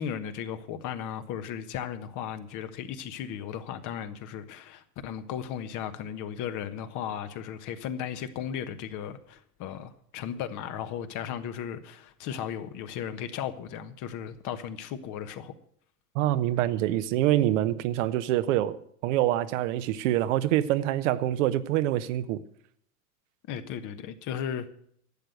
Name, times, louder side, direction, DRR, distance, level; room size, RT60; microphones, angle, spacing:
voice 1, 0.0-15.5 23.5-24.7, left 9 dB, 45° left, 1.3 m, -36 dB
voice 2, 16.1-18.8 19.0-22.4, right 13 dB, 55° right, 1.0 m, -25 dB
12.0 x 7.9 x 9.2 m
hypercardioid pair, 100°, 44 cm